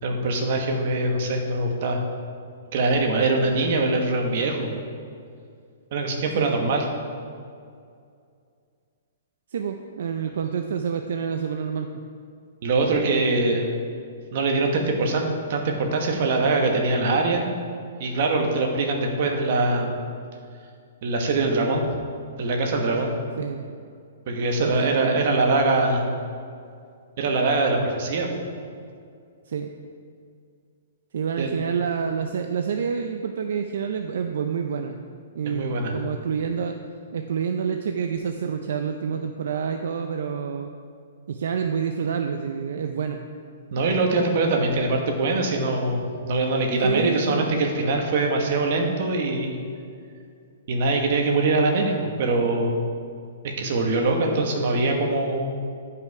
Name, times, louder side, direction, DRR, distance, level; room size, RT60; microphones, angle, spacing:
voice 1, 0.0-2.0 2.7-4.7 5.9-6.9 12.6-13.7 14.3-17.5 18.0-20.0 21.0-21.9 22.4-23.1 24.3-26.1 27.2-28.3 31.4-31.5 35.4-35.9 43.7-49.6 50.7-52.8 53.4-55.5, right 2 dB, 45° right, 2 dB, 1.3 m, -23 dB
voice 2, 9.5-11.9 23.4-23.7 24.6-25.5 29.5-29.7 31.1-35.0 35.3-36.8 37.1-40.7 41.3-43.2 46.8-47.6, right 7 dB, 70° right, 5 dB, 0.5 m, -28 dB
10.0 x 5.7 x 4.7 m, 2.3 s
hypercardioid pair, 165°, 0 cm